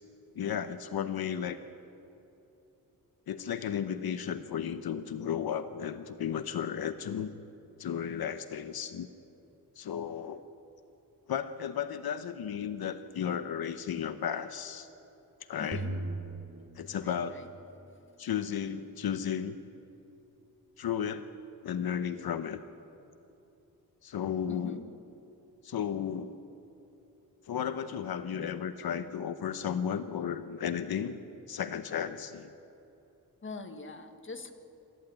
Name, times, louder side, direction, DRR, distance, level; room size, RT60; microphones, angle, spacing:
voice 1, 0.3-1.6 3.3-7.4 7.8-9.1 9.8-10.4 11.3-14.9 15.5-15.8 16.8-17.4 18.2-19.6 20.8-21.3 21.6-22.6 24.0-24.8 25.6-26.4 27.5-31.2 31.5-32.5, left 8 dB, 85° left, 10 dB, 0.9 m, -34 dB
voice 2, 15.6-15.9 16.9-17.5 24.5-24.9 33.4-34.5, left 3 dB, 35° left, 6 dB, 1.7 m, -43 dB
sound 1, 15.7-17.9, right 2 dB, 55° right, 2.7 m, -38 dB
27.5 x 14.0 x 9.1 m, 2.9 s
wide cardioid pair, 140°, 36 cm